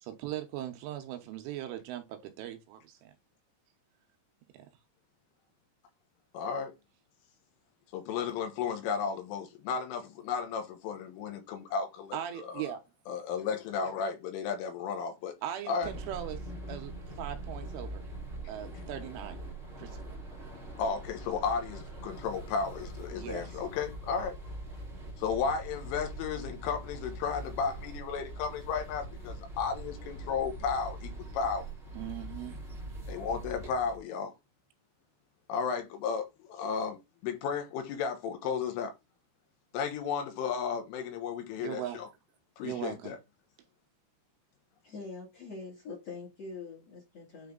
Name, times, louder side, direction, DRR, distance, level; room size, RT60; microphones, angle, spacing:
voice 1, 0.0-3.2 12.1-12.8 15.4-16.4 16.7-18.0 18.5-19.4 19.8-20.1 23.1-23.6 31.9-32.6 41.6-42.0 42.6-43.2, right 11 dB, 80° right, 3.3 m, -39 dB
voice 2, 6.3-6.7 7.9-12.7 13.1-15.4 15.7-15.9 20.8-24.4 25.2-31.6 33.1-34.3 35.5-37.0 37.2-38.9 39.7-42.1 42.6-43.2, left 6 dB, 75° left, 3.7 m, -34 dB
sound 1, 15.8-34.0, right 1 dB, 40° right, 0.7 m, -43 dB
voice 3, 44.8-47.5, left 4 dB, 45° left, 2.1 m, -44 dB
9.5 x 3.4 x 3.9 m
omnidirectional pair, 5.9 m